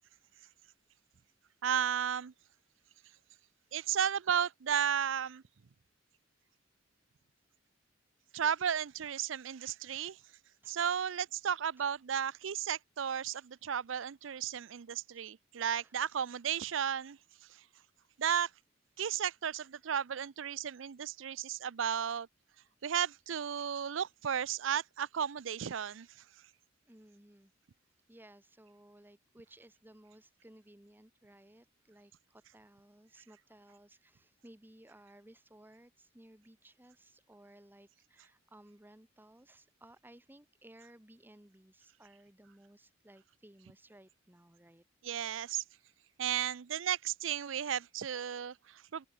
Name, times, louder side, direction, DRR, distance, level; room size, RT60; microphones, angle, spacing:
voice 1, 1.6-2.3 3.7-5.4 8.3-10.2 10.7-17.2 17.5-17.6 18.2-18.5 19.0-22.3 22.8-26.1 45.0-45.6 46.2-49.1, right 8 dB, 70° right, 0.5 m, -34 dB
voice 2, 10.6-11.1 13.3-13.4 15.1-15.3 15.7-15.9 26.8-27.5 28.1-44.8, right 1 dB, 10° right, 1.3 m, -59 dB
head